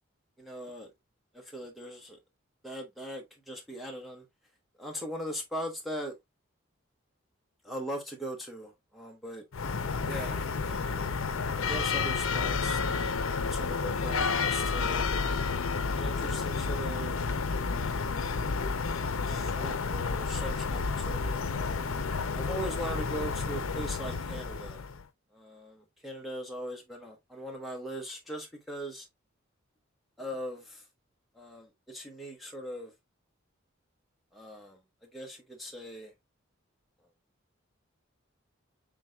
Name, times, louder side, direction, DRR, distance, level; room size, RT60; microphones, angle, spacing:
voice 1, 0.4-0.9 1.3-2.2 2.6-4.3 4.8-6.2 7.6-9.4 10.0-11.2 11.6-15.1 15.9-17.2 17.7-18.2 19.3-21.7 22.3-24.8 25.3-29.1 30.2-30.9 31.3-32.9 34.3-36.1, equal, ahead, 0.9 m, -40 dB
sound 1, 9.5-25.0, left 4 dB, 80° left, 0.6 m, -31 dB
sound 2, 10.1-14.2, left 4 dB, 50° left, 1.3 m, -53 dB
6.2 x 3.7 x 2.3 m
head